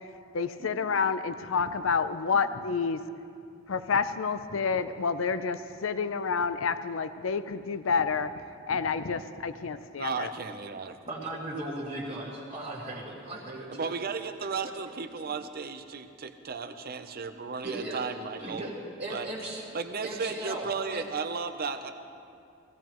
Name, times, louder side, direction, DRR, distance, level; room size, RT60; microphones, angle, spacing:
voice 1, 0.3-3.0 3.7-10.3, left 5 dB, 80° left, 11 dB, 0.6 m, -29 dB
voice 2, 10.0-11.0 13.7-18.6 19.1-19.3 19.7-21.9, right 5 dB, 50° right, 8 dB, 0.7 m, -34 dB
voice 3, 11.1-13.9 15.3-15.4 17.6-18.0 18.4-19.6 20.0-21.0, right 1 dB, 35° right, -8 dB, 1.8 m, -37 dB
16.5 x 16.5 x 3.1 m, 2.4 s
head